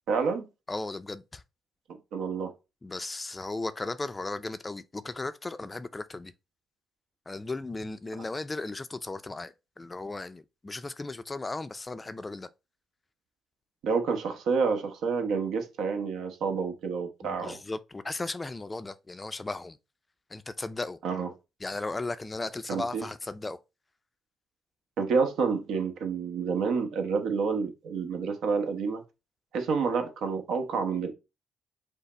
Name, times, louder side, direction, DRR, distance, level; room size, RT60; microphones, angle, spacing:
voice 1, 0.1-0.4 2.1-2.5 13.8-17.6 21.0-21.3 22.7-23.0 25.0-29.0 29.5-31.1, right 5 dB, 80° right, 0.9 m, -28 dB
voice 2, 0.7-1.4 2.8-6.3 7.3-12.5 17.2-19.8 20.3-21.0 21.6-23.6, left 2 dB, 20° left, 0.4 m, -36 dB
5.5 x 2.0 x 4.1 m
cardioid pair, 90°, 0 cm